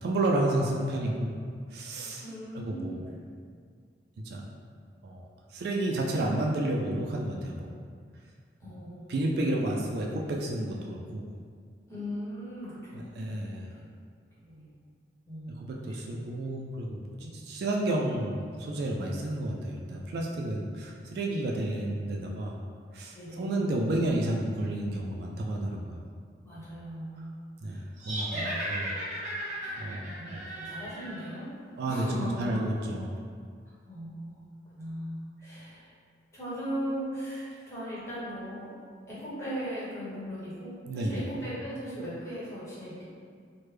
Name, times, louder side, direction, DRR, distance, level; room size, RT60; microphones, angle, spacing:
voice 1, 0.0-1.3 1.7-2.2 2.5-3.0 4.2-4.4 5.0-5.2 5.5-7.7 9.1-11.2 12.9-13.7 15.6-17.0 17.4-22.6 22.9-26.0 27.6-28.9 29.1-30.4 31.8-33.1 40.9-41.2, right 1 dB, 65° right, -1 dB, 0.3 m, -31 dB
voice 2, 2.2-3.0 8.6-9.2 9.6-9.7 11.9-13.1 13.5-13.9 14.4-14.7 15.3-16.3 17.2-17.4 23.1-23.7 26.4-27.4 27.6-27.9 28.3-28.6 29.6-29.8 30.0-31.5 31.9-32.6 33.7-35.9 36.3-38.7 39.1-43.0, equal, 15° left, -11 dB, 1.1 m, -38 dB
sound 1, 28.0-31.4, right 1 dB, 45° right, 0.7 m, -36 dB
3.2 x 2.1 x 3.2 m, 2.1 s
head